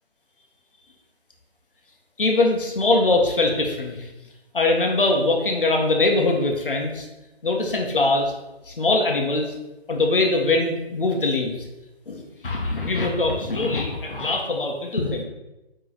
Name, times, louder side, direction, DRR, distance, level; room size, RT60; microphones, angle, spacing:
voice 1, 2.2-4.0 4.5-7.1 7.4-8.3 8.7-9.5 9.9-11.6 12.1-15.2, left 2 dB, 55° left, 1 dB, 1.5 m, -22 dB
9.2 x 3.7 x 4.2 m, 1.0 s
figure-of-eight pair, 170°, 32 cm